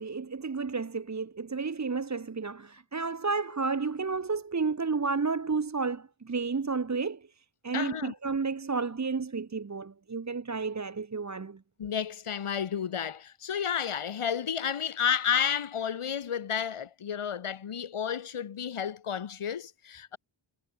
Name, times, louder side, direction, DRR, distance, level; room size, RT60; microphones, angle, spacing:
voice 1, 0.0-7.2 7.6-11.6, right 4 dB, 35° right, 1.3 m, -31 dB
voice 2, 7.7-8.1 11.8-20.2, left 8 dB, 85° left, 2.1 m, -31 dB
wide cardioid pair, 95°, 49 cm